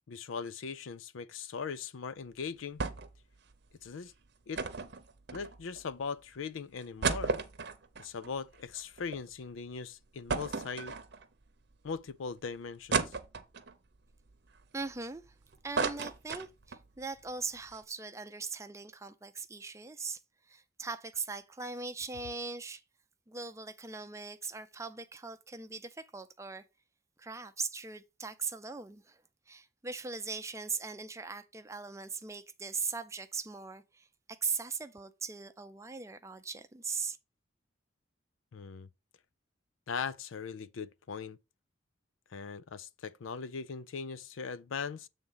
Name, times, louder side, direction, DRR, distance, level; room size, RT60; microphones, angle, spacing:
voice 1, 0.1-2.8 3.8-4.1 4.5-4.6 5.3-7.3 8.0-11.0 11.8-13.2 38.5-38.9 39.9-41.4 42.3-45.1, left 5 dB, 90° left, 0.5 m, -40 dB
sound 1, 2.8-3.2 3.5-3.6 4.5-5.8 6.3-6.4 6.8-9.2 9.6-9.7 10.3-11.4 11.9-12.0 12.9-13.7 14.3-15.3 15.5-16.9 17.2-17.3 17.6-17.8, right 4 dB, 60° right, 0.8 m, -34 dB
voice 2, 14.7-15.2 15.6-20.2 20.5-22.8 23.3-26.7 27.2-29.2 29.5-37.2, right 4 dB, 15° right, 0.5 m, -40 dB
7.7 x 3.6 x 5.5 m
head